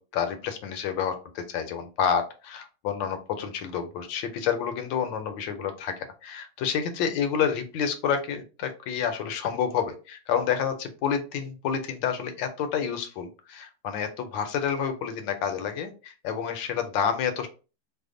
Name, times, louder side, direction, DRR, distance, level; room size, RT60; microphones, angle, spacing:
voice 1, 0.0-17.5, left 7 dB, 75° left, 7 dB, 1.2 m, -29 dB
3.3 x 2.0 x 3.7 m, 0.33 s
omnidirectional pair, 2.3 m